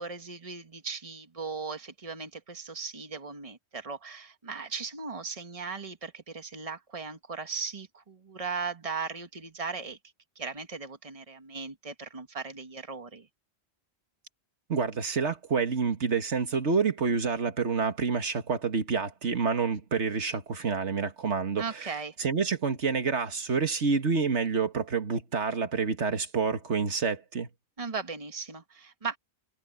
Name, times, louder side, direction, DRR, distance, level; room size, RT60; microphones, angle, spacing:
voice 1, 0.0-10.0 10.3-13.3 21.6-22.2 27.8-29.2, right 5 dB, 30° right, 1.6 m, -37 dB
voice 2, 14.7-21.9 22.2-27.5, right 5 dB, 90° right, 2.0 m, -28 dB
omnidirectional pair, 1.1 m